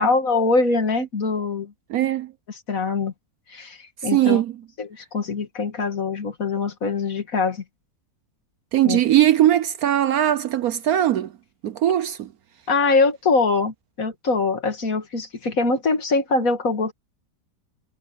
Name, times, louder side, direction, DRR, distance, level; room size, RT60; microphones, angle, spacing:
voice 1, 0.0-1.7 2.7-3.1 3.5-4.4 4.8-7.6 8.8-9.0 12.7-16.9, left 3 dB, 50° left, 2.2 m, -23 dB
voice 2, 1.9-2.3 4.0-4.5 8.7-11.3 11.6-12.3, right 12 dB, 70° right, 1.0 m, -20 dB
omnidirectional pair, 1.9 m